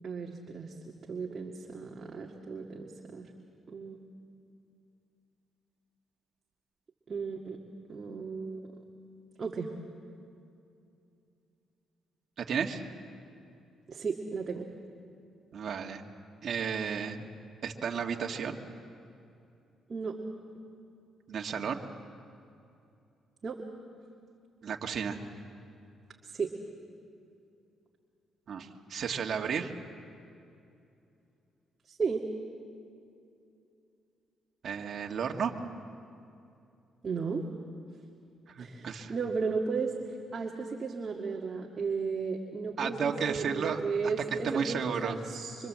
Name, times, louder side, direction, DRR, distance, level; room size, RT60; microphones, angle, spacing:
voice 1, 0.0-0.7 1.1-3.3 3.7-4.0 7.1-7.6 7.9-8.6 9.4-9.7 13.9-14.7 19.9-20.2 23.4-23.6 26.2-26.5 31.9-32.2 37.0-37.5 38.6-39.9 40.3-45.7, right 5 dB, 40° right, 0 dB, 2.1 m, -34 dB
voice 2, 12.4-12.8 15.5-16.0 16.4-17.2 17.6-18.6 21.3-21.8 24.6-25.2 28.5-29.7 34.6-35.5 38.5-39.1 42.8-43.9 44.4-45.2, right 6 dB, 55° right, 2 dB, 2.0 m, -33 dB
25.5 x 25.5 x 7.7 m, 2.6 s
cardioid pair, 90°, 0 cm